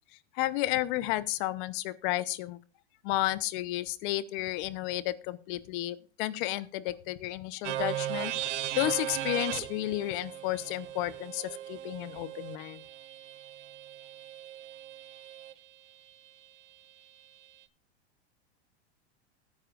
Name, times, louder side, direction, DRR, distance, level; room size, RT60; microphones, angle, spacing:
voice 1, 0.3-2.6 3.0-12.8, left 16 dB, 45° left, 15 dB, 0.9 m, -32 dB
sound 1, 7.6-15.5, right 12 dB, 85° right, 1.2 m, -37 dB
16.5 x 9.6 x 2.5 m, 0.35 s
supercardioid pair, 140°, 34 cm